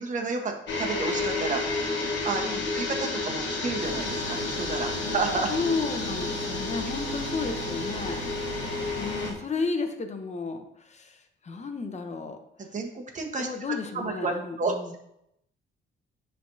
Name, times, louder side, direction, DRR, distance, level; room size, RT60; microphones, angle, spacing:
voice 1, 0.0-2.4 2.7-5.5 12.6-13.5 13.9-15.0, right 3 dB, 40° right, 3 dB, 1.2 m, -31 dB
sound 1, 0.7-9.3, left 3 dB, 65° left, 1.2 m, -31 dB
sound 2, 3.8-9.3, right 2 dB, 60° right, 1.1 m, -38 dB
voice 2, 5.5-8.2 9.0-12.4 13.4-14.9, left 4 dB, 35° left, 6 dB, 0.9 m, -33 dB
10.0 x 3.4 x 2.7 m, 0.77 s
cardioid pair, 90°, 20 cm